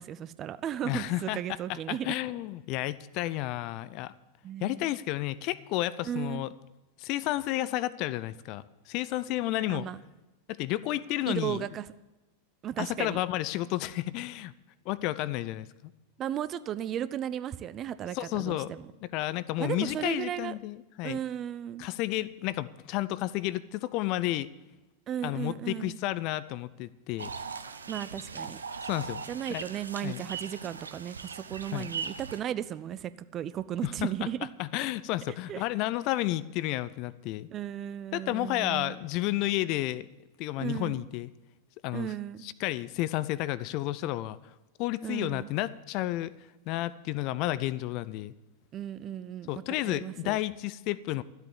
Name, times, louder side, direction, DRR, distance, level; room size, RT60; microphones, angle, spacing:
voice 1, 0.0-2.1 4.4-4.9 6.0-6.5 9.7-10.0 11.3-11.9 12.6-13.2 16.2-18.9 19.6-20.5 21.0-21.9 25.1-26.0 27.9-28.6 29.3-34.4 35.5-35.6 37.5-39.0 40.6-41.0 41.9-42.4 45.0-45.5 48.7-50.4, right 10 dB, 30° right, 16 dB, 0.5 m, -35 dB
voice 2, 0.8-1.4 1.9-4.1 4.6-6.5 7.0-9.9 10.5-11.7 12.8-14.5 14.9-15.7 18.1-18.7 19.0-21.2 21.8-24.5 25.2-27.3 28.8-29.2 29.5-29.6 30.0-30.2 31.7-31.9 33.8-34.1 34.6-37.5 38.1-40.1 40.4-41.3 41.8-42.1 42.4-44.4 44.8-46.3 46.7-48.3 49.5-51.2, left 16 dB, 40° left, 17 dB, 0.5 m, -31 dB
sound 1, 27.2-32.4, right 5 dB, 75° right, 0.8 m, -39 dB
13.0 x 8.0 x 8.7 m, 1.1 s
figure-of-eight pair, 90°, 0 cm